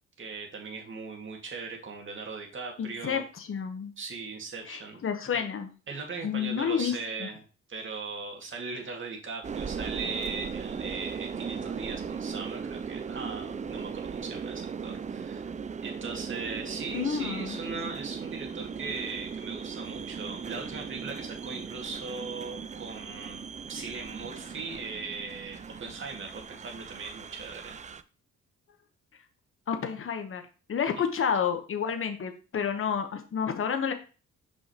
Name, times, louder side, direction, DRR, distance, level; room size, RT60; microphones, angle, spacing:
voice 1, 0.2-3.2 4.0-5.0 5.3-5.5 5.9-15.5 15.8-27.8 31.0-31.1, right 4 dB, 40° right, 1 dB, 2.1 m, -39 dB
voice 2, 2.8-3.9 4.7-5.7 6.2-7.3 16.9-17.6 29.7-30.4 30.7-33.9, left 7 dB, 45° left, 6 dB, 1.1 m, -30 dB
sound 1, 9.4-28.0, right 6 dB, 25° right, 0.4 m, -38 dB
6.0 x 5.5 x 3.0 m, 0.35 s
cardioid pair, 90°, 30 cm